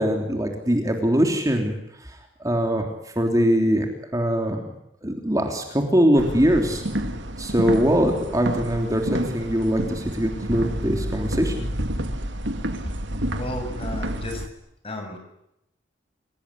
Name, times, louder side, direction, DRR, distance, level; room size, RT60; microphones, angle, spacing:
voice 1, 0.0-1.7 2.0-2.8 3.2-4.6 5.0-6.8 7.4-11.7, equal, 20° right, 3 dB, 3.4 m, -22 dB
sound 1, 6.1-14.5, right 1 dB, 75° right, 2.5 m, -29 dB
voice 2, 13.3-14.4 14.8-15.2, left 1 dB, 30° left, 5 dB, 7.0 m, -33 dB
29.0 x 18.5 x 9.9 m, 0.85 s
head